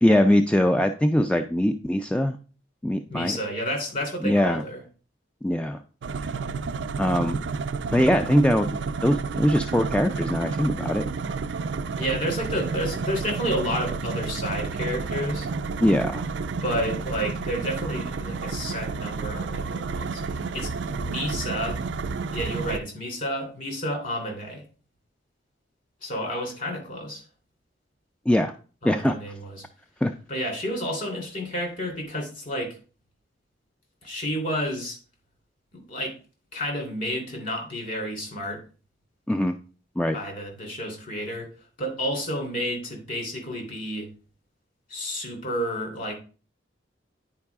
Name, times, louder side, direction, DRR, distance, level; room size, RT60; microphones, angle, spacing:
voice 1, 0.0-2.4 2.8-3.4 4.2-4.6 5.4-5.8 6.3-6.4 7.0-7.4 7.9-11.0 15.8-16.3 28.3-28.5 28.8-29.2 30.0-30.1 39.3-39.6 40.0-40.2, left 1 dB, 5° left, 7 dB, 0.3 m, -22 dB
voice 2, 3.1-4.8 12.0-15.5 16.6-21.8 22.3-24.6 26.0-27.2 28.8-29.6 30.3-32.8 34.0-35.0 35.7-36.1 36.5-38.6 40.1-41.5 41.8-44.1 44.9-46.1, equal, 50° left, 1 dB, 3.2 m, -30 dB
sound 1, 6.0-22.8, right 4 dB, 70° right, 0.4 m, -30 dB
9.8 x 4.7 x 3.5 m, 0.37 s
head